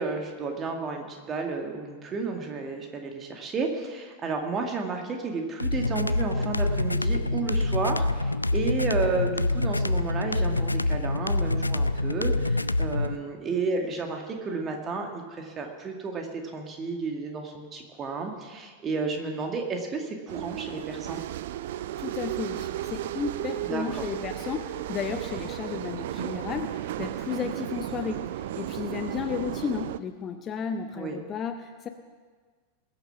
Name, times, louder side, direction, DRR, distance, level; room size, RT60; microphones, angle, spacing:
voice 1, 0.0-21.2 23.7-23.8 30.9-31.2, right 4 dB, 25° right, 3 dB, 2.0 m, -32 dB
sound 1, 5.6-13.2, left 2 dB, 85° left, 0.3 m, -26 dB
sound 2, 20.3-30.0, right 13 dB, 55° right, 0.4 m, -34 dB
voice 2, 22.0-31.9, left 6 dB, 25° left, 7 dB, 0.8 m, -33 dB
20.5 x 7.0 x 5.9 m, 1.5 s
figure-of-eight pair, 90°, 0 cm